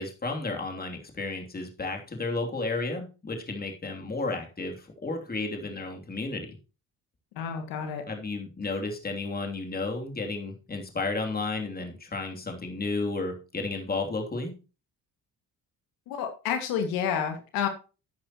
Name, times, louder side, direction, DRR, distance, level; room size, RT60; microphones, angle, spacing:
voice 1, 0.0-6.6 8.1-14.5, left 3 dB, 25° left, 2 dB, 3.1 m, -32 dB
voice 2, 7.4-8.0 16.1-17.7, left 8 dB, 90° left, 5 dB, 2.2 m, -29 dB
12.5 x 9.0 x 3.1 m, 0.32 s
cardioid pair, 90°, 34 cm